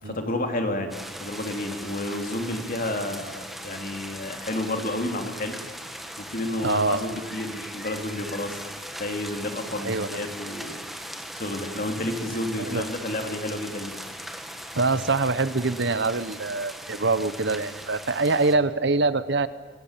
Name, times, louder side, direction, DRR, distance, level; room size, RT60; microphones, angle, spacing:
voice 1, 0.0-5.6 6.2-8.6 9.0-10.7 11.3-13.9, left 1 dB, 45° left, 4 dB, 3.3 m, -30 dB
sound 1, 0.9-18.6, equal, ahead, 1.8 m, -39 dB
voice 2, 6.6-7.0 9.8-10.2 12.6-12.8 14.7-19.5, right 3 dB, 60° right, 14 dB, 1.1 m, -24 dB
24.5 x 21.5 x 9.1 m, 1.4 s
head